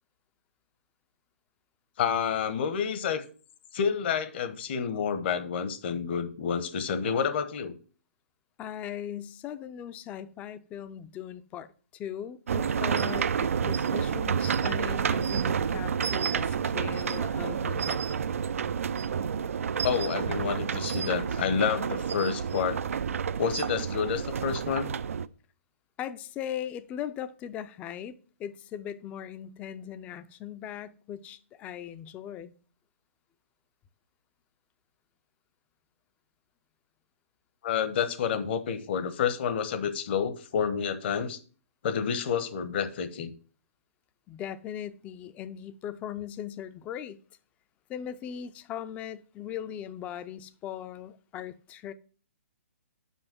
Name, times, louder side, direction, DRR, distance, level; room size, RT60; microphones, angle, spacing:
voice 1, 2.0-3.2 3.7-7.8 19.8-22.8 23.4-24.9 37.6-41.4 41.8-43.3, left 7 dB, 50° left, 0.9 m, -29 dB
voice 2, 8.6-18.0 26.0-32.5 44.3-47.2 47.9-51.9, left 10 dB, 20° left, 0.4 m, -39 dB
sound 1, 12.5-25.3, right 7 dB, 75° right, 0.4 m, -29 dB
5.5 x 5.1 x 5.9 m
hypercardioid pair, 145°, 8 cm